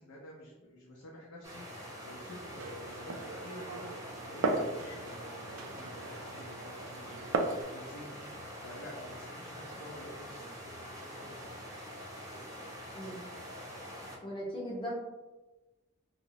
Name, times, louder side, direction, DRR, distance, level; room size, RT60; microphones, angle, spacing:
voice 1, 0.0-10.6 11.0-11.4 12.1-12.4, left 1 dB, 85° left, -3 dB, 0.5 m, -50 dB
sound 1, 1.4-14.2, equal, 15° right, 0.5 m, -45 dB
Glass, 2.5-7.6, right 3 dB, 70° right, 0.3 m, -37 dB
voice 2, 14.2-14.9, equal, 25° left, -4 dB, 0.7 m, -38 dB
2.8 x 2.0 x 2.7 m, 1.1 s
head